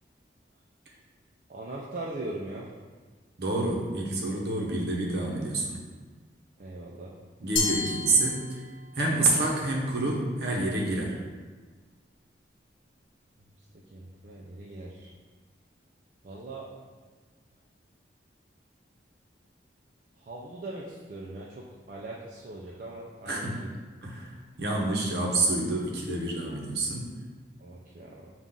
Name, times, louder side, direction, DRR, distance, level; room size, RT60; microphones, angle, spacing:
voice 1, 1.5-2.7 6.6-7.1 13.9-15.1 16.2-16.7 20.2-23.7 27.6-28.3, right 2 dB, 45° right, -4 dB, 0.4 m, -40 dB
voice 2, 3.4-5.8 7.4-8.6 8.9-11.2 23.3-23.6 24.0-27.1, right 2 dB, 65° right, -2 dB, 0.8 m, -28 dB
Glass, 7.6-9.0, left 4 dB, 80° left, 0.7 m, -31 dB
5.5 x 2.4 x 3.7 m, 1.4 s
head